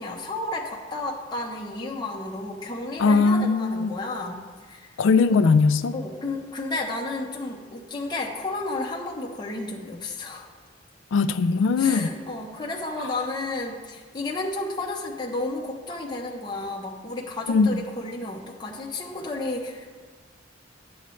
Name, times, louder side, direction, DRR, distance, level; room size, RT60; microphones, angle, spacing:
voice 1, 0.0-4.9 5.9-10.5 11.8-19.9, left 2 dB, 20° left, -3 dB, 0.8 m, -32 dB
voice 2, 3.0-3.9 5.0-5.9 11.1-12.1 17.5-17.8, left 4 dB, 70° left, 12 dB, 0.4 m, -20 dB
10.5 x 7.9 x 3.2 m, 1.5 s
head